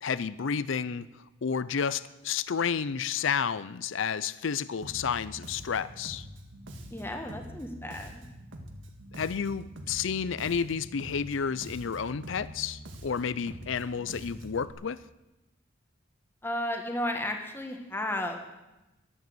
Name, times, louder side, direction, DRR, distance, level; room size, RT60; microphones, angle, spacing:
voice 1, 0.0-1.1 1.4-6.3 9.1-15.0, left 6 dB, 65° left, 17 dB, 0.5 m, -31 dB
Bass guitar, 4.8-14.7, equal, 65° right, 1.8 m, -45 dB
voice 2, 6.9-8.2 16.4-18.5, left 1 dB, 10° left, 3 dB, 1.4 m, -33 dB
12.0 x 12.0 x 7.8 m, 0.99 s
head